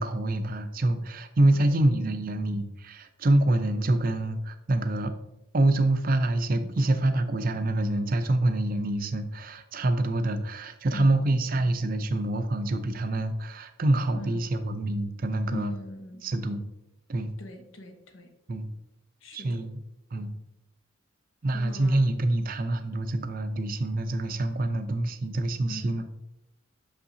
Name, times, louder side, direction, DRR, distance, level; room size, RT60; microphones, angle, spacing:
voice 1, 0.0-5.1 5.5-15.7 16.2-16.6 17.1-17.3 18.5-18.7 19.3-19.8 20.1-20.3 21.4-26.1, right 1 dB, 40° right, 8 dB, 0.5 m, -26 dB
voice 2, 1.5-2.2 10.9-11.2 14.1-14.4 15.5-16.3 17.4-18.3 19.2-19.6 21.5-22.1 25.7-26.0, left 1 dB, 70° left, 5 dB, 0.9 m, -41 dB
6.5 x 5.6 x 2.7 m, 0.85 s
head